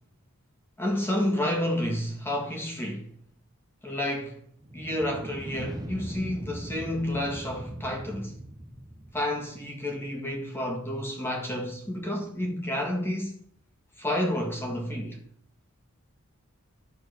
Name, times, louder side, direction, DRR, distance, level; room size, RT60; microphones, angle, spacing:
voice 1, 0.8-3.1 3.8-4.4 4.7-8.4 9.1-13.4 14.0-15.2, left 1 dB, 10° left, 1.8 m, -30 dB
sound 1, 4.6-9.5, right 1 dB, 15° right, 0.9 m, -40 dB
12.0 x 4.2 x 6.4 m
head